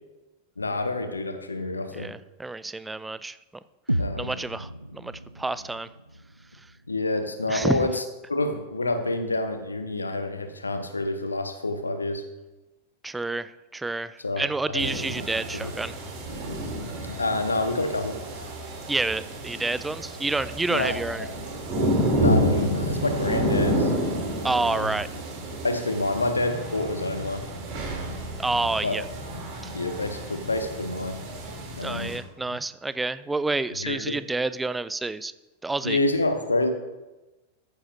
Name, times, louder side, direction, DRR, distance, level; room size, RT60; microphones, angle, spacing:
voice 1, 0.6-2.1 4.0-4.3 6.9-8.0 8.3-12.3 14.2-15.0 15.5-15.7 17.2-18.2 20.7-21.3 22.2-23.9 24.7-24.9 25.6-27.5 28.8-29.0 29.7-31.2 31.8-32.1 32.5-32.6 33.8-34.2 35.8-36.7, left 2 dB, 80° left, 8 dB, 1.0 m, -28 dB
voice 2, 1.9-3.4 4.2-5.9 7.5-7.8 13.0-16.0 18.9-21.3 24.4-25.1 28.4-29.1 31.8-35.3 35.6-36.0, right 3 dB, 10° right, 15 dB, 0.4 m, -29 dB
sound 1, 3.9-7.9, right 1 dB, 85° right, 0.4 m, -34 dB
sound 2, 14.8-32.2, equal, 40° right, 3.3 m, -30 dB
14.0 x 9.8 x 2.8 m, 1.1 s
figure-of-eight pair, 90°, 0 cm